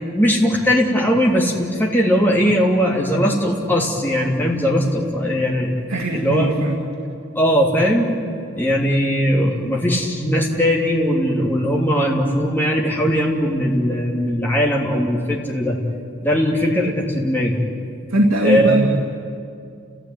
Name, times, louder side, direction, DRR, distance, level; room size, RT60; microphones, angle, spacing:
voice 1, 0.1-5.7 6.1-6.6 7.3-8.1 8.5-15.8 16.2-17.6 18.4-18.8, equal, 10° left, -2 dB, 3.1 m, -19 dB
voice 2, 5.9-6.8 18.1-19.0, right 1 dB, 85° right, 1 dB, 2.1 m, -19 dB
30.0 x 16.5 x 9.5 m, 2.5 s
head